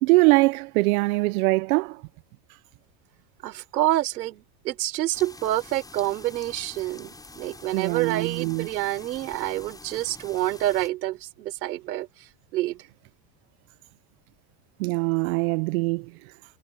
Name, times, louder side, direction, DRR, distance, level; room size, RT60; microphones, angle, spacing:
voice 1, 0.0-2.0 7.7-8.7 14.8-16.1, right 25 dB, 60° right, 0.6 m, -22 dB
voice 2, 3.4-12.8, right 15 dB, 90° right, 5.0 m, -28 dB
sound 1, 5.1-10.9, left 2 dB, 5° left, 6.0 m, -46 dB
supercardioid pair, 145°, 49 cm